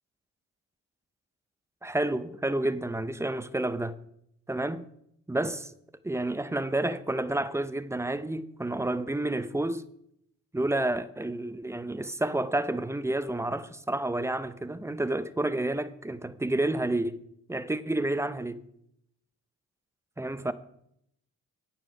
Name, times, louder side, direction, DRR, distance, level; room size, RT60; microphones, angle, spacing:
voice 1, 1.8-4.0 4.5-4.9 5.3-5.7 6.0-9.8 10.5-17.2 17.5-18.6 20.2-20.5, right 1 dB, 10° right, 0.6 m, -30 dB
9.8 x 9.0 x 5.0 m
cardioid pair, 90°, 30 cm